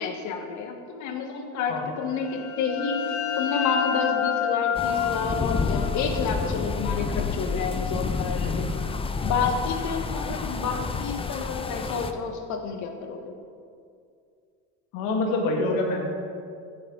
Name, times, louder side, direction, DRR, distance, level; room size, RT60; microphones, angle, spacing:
voice 1, 0.0-3.0 3.4-8.7 9.2-13.3, left 5 dB, 55° left, 5 dB, 1.6 m, -29 dB
sound 1, 2.1-7.6, left 9 dB, 90° left, 0.9 m, -30 dB
sound 2, 4.7-12.1, left 4 dB, 15° left, 0.6 m, -30 dB
sound 3, 6.6-11.7, left 5 dB, ahead, 3.1 m, -35 dB
voice 2, 8.3-8.7 9.3-9.5 14.9-16.0, left 2 dB, 70° left, 1 dB, 2.2 m, -27 dB
15.0 x 7.9 x 4.0 m, 2.3 s
supercardioid pair, 100°, 36 cm